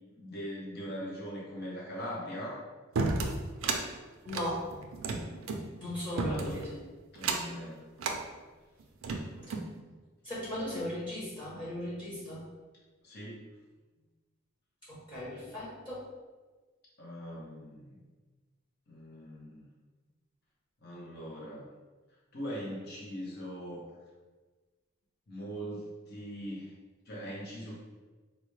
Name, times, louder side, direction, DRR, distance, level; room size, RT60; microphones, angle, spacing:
voice 1, 0.1-2.6 6.3-6.6 7.1-7.9 13.0-13.5 14.0-14.1 17.0-18.0 18.9-19.7 20.8-21.7 22.3-23.8 25.3-26.7 27.0-27.7, equal, 50° left, -5 dB, 0.8 m, -41 dB
sound 1, 3.0-3.8 4.3-5.6 6.2-6.7 7.2-7.6 8.0-8.2 8.8-9.7, right 3 dB, 80° right, 0.4 m, -32 dB
voice 2, 4.2-4.6 5.8-6.8 9.5-9.6 10.2-12.4 14.9-16.0, left 1 dB, 25° left, -9 dB, 0.9 m, -37 dB
3.9 x 2.1 x 3.1 m, 1.3 s
head